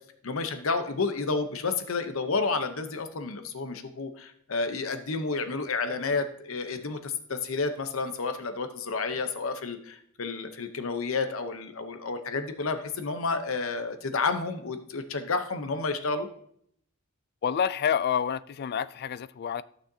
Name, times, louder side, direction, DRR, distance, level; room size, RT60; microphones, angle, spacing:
voice 1, 0.2-16.3, left 4 dB, 70° left, 0.8 m, -30 dB
voice 2, 17.4-19.6, left 8 dB, 50° left, 0.3 m, -28 dB
14.5 x 6.3 x 2.7 m
head